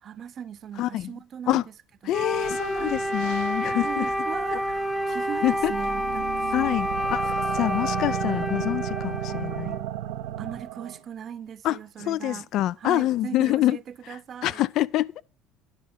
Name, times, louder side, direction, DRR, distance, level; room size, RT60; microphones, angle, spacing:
voice 1, 0.0-1.6 2.0-2.1 2.8-3.0 3.6-6.8 10.4-12.5 12.8-13.8 14.1-14.6, right 8 dB, 45° right, 0.5 m, -38 dB
voice 2, 0.8-1.1 1.5-1.6 2.1-4.1 4.5-4.6 5.4-5.7 6.5-9.8 11.6-13.8 14.4-15.2, left 14 dB, 60° left, 0.4 m, -26 dB
Wind instrument woodwind instrument, 2.1-9.8, equal, 5° left, 0.8 m, -29 dB
sound 1, 2.3-8.4, left 7 dB, 90° left, 1.3 m, -43 dB
sound 2, 5.3-11.0, right 13 dB, 85° right, 0.8 m, -33 dB
10.5 x 4.9 x 5.6 m
supercardioid pair, 95°, 0 cm